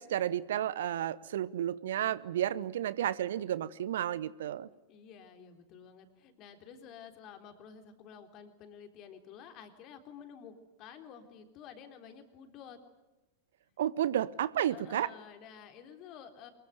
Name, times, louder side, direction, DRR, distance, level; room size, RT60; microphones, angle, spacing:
voice 1, 0.0-4.7 13.8-15.1, right 11 dB, 60° right, 0.8 m, -32 dB
voice 2, 4.9-10.5 10.8-12.8 14.7-16.5, left 8 dB, 40° left, 3.6 m, -51 dB
24.5 x 22.0 x 9.3 m
figure-of-eight pair, 90°, 0 cm